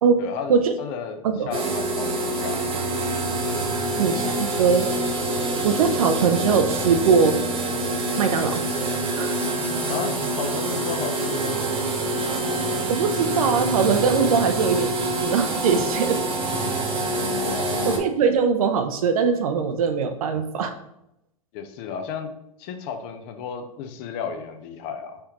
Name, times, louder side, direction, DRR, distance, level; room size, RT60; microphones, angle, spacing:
voice 1, 0.2-2.7 3.7-3.8 9.9-11.9 17.4-17.9 21.5-22.3 22.6-25.2, left 6 dB, 45° left, 7 dB, 0.7 m, -33 dB
sound 1, 1.5-18.0, right 2 dB, 30° right, 1.0 m, -26 dB
voice 2, 4.0-5.1 5.6-7.4 8.2-8.6 9.2-9.3 12.9-14.9 15.2-16.2 17.8-20.7, right 6 dB, 75° right, 8 dB, 0.5 m, -21 dB
4.3 x 3.6 x 2.9 m, 0.81 s
hypercardioid pair, 110°, 19 cm